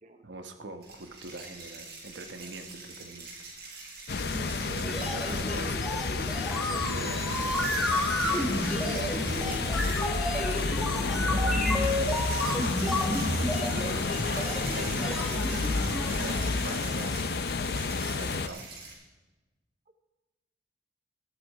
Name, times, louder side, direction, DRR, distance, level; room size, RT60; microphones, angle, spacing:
voice 1, 0.2-3.3 3.6-4.0 4.6-5.8 6.3-10.1 10.9-12.1 13.1-15.4 16.0-16.4 16.6-17.2 18.0-18.6, right 2 dB, 85° right, 6 dB, 1.2 m, -42 dB
sound 1, 0.8-18.9, right 3 dB, 60° right, 5.4 m, -43 dB
sound 2, 4.1-18.5, left 4 dB, 60° left, 0.6 m, -30 dB
voice 2, 4.3-4.7 11.6-11.9, equal, 40° right, 6 dB, 0.9 m, -40 dB
sound 3, 4.8-16.4, left 1 dB, ahead, 1.8 m, -31 dB
13.5 x 12.0 x 4.9 m, 1.1 s
head